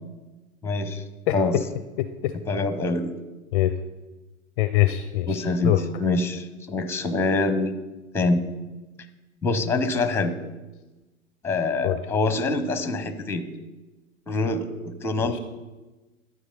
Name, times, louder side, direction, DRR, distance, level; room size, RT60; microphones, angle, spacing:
voice 1, 0.6-1.0 1.3-1.6 2.5-3.1 5.3-7.7 8.1-8.4 9.4-10.3 11.4-13.5 14.3-15.4, left 3 dB, 5° left, 10 dB, 0.7 m, -25 dB
voice 2, 2.0-2.3 3.5-3.8 4.6-5.3 5.6-5.8 11.8-12.0 15.2-15.4, left 15 dB, 40° left, 11 dB, 0.4 m, -23 dB
12.0 x 4.6 x 5.2 m, 1.1 s
figure-of-eight pair, 90°, 40 cm